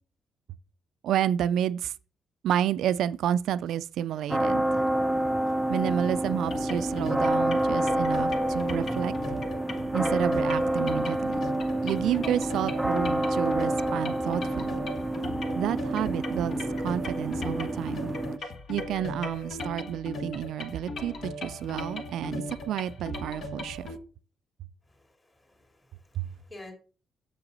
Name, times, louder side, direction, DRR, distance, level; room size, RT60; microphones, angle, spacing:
voice 1, 1.0-1.9 2.4-4.6 5.7-9.4 9.9-11.5 11.8-14.8 15.5-16.5 16.8-18.1 18.7-23.8 26.2-26.3, right 10 dB, 80° right, 0.3 m, -30 dB
sound 1, 4.3-18.4, right 1 dB, 5° right, 0.5 m, -28 dB
sound 2, 6.5-24.0, left 2 dB, 60° left, 1.1 m, -37 dB
voice 2, 24.9-26.7, left 2 dB, 25° left, 2.5 m, -50 dB
6.9 x 6.8 x 4.0 m
cardioid pair, 90°, 0 cm